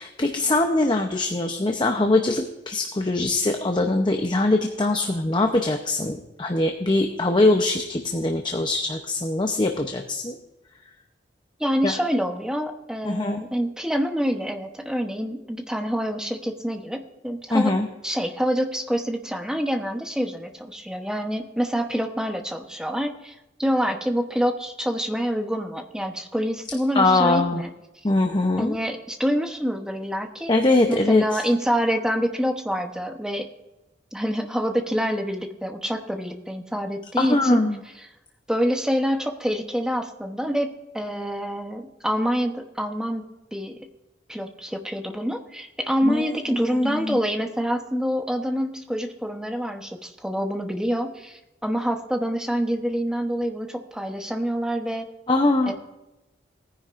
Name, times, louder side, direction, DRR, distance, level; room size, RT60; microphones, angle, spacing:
voice 1, 0.0-10.4 11.8-11.9 13.0-13.4 17.5-17.9 26.9-27.6 28.0-28.8 30.5-31.4 37.2-37.8 46.0-47.2 55.3-55.7, left 2 dB, 25° left, 4 dB, 0.8 m, -22 dB
voice 2, 11.6-17.7 18.0-27.7 28.6-30.6 30.9-33.5 34.1-37.6 38.5-43.2 43.5-43.8 44.3-55.1 55.7-55.8, equal, 5° right, 4 dB, 1.0 m, -26 dB
18.5 x 10.0 x 2.6 m, 0.97 s
head